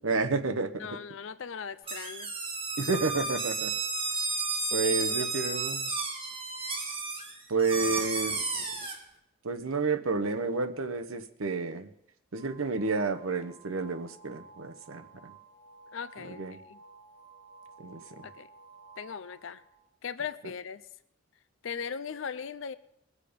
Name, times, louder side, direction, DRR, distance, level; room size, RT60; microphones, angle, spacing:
voice 1, 0.0-0.9 2.8-3.7 4.7-5.9 7.5-8.5 9.4-11.9 12.3-15.3 16.3-16.6 17.8-18.2, right 4 dB, 85° right, 9 dB, 0.9 m, -30 dB
voice 2, 0.8-2.3 4.8-5.3 15.9-16.4 16.7-16.8 18.2-18.5 19.0-19.6 20.0-20.8 21.6-22.7, left 6 dB, 70° left, 14 dB, 0.5 m, -39 dB
sound 1, 1.9-9.0, right 3 dB, 25° right, 1.7 m, -32 dB
sound 2, 12.3-19.9, right 4 dB, 5° left, 4.7 m, -54 dB
21.0 x 7.5 x 5.1 m, 0.78 s
head